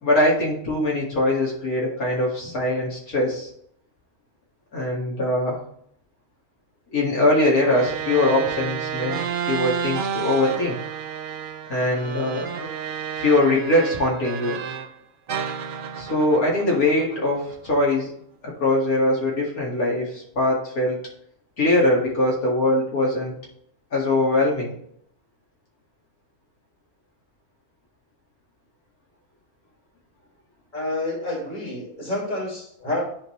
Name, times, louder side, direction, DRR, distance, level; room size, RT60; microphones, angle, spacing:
voice 1, 0.0-3.5 4.7-5.6 6.9-9.2 9.5-10.8 11.7-12.4 13.2-14.6 16.0-18.1 18.4-21.0 21.6-23.3 23.9-24.7, left 1 dB, 75° left, -3 dB, 2.5 m, -22 dB
sound 1, 7.5-14.9 15.3-17.7, right 7 dB, 55° right, 0.6 m, -31 dB
voice 2, 30.7-33.0, left 1 dB, 30° left, -3 dB, 2.6 m, -29 dB
10.0 x 4.0 x 3.2 m, 0.68 s
omnidirectional pair, 1.6 m